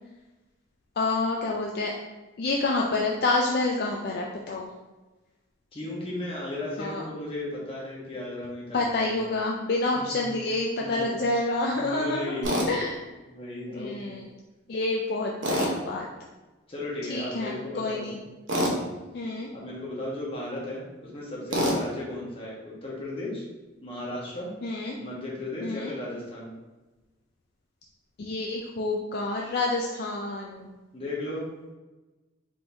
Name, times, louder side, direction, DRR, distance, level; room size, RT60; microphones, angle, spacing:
voice 1, 1.0-1.9 2.4-4.7 6.8-7.0 8.7-12.3 12.7-13.0 13.7-14.2 14.7-16.0 17.1-18.2 19.1-19.5 24.6-25.0 25.6-25.9 28.2-30.7, left 2 dB, 55° left, -1 dB, 0.4 m, -28 dB
voice 2, 5.7-9.2 10.0-10.3 10.8-11.4 11.7-12.7 13.3-14.0 16.7-18.1 18.5-18.8 19.5-23.4 23.8-24.5 25.0-26.5 30.9-31.4, left 1 dB, 30° left, -5 dB, 1.0 m, -35 dB
Tools, 12.4-12.7 15.4-15.8 18.5-18.8 21.5-21.8, equal, 80° right, 0.9 m, -25 dB
4.4 x 3.7 x 2.6 m, 1.2 s
head